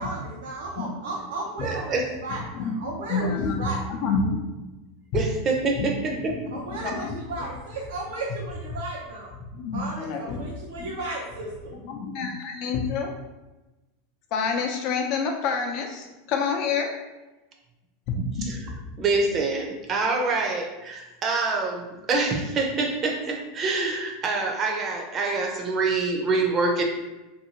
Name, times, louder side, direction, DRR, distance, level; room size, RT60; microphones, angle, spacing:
voice 1, 0.0-3.8 6.5-9.3 9.7-11.7, right 2 dB, 80° right, -4 dB, 0.6 m, -34 dB
voice 2, 1.6-2.0 5.1-6.1 18.2-18.6 19.0-26.8, right 3 dB, 35° right, 1 dB, 0.6 m, -26 dB
voice 3, 2.3-4.4 5.8-7.5 9.4-10.5 10.8-10.9 11.7-13.1 14.3-16.9 18.4-18.9, left 5 dB, 55° left, 3 dB, 0.5 m, -29 dB
2.7 x 2.7 x 2.8 m, 1.1 s
hypercardioid pair, 100°, 0 cm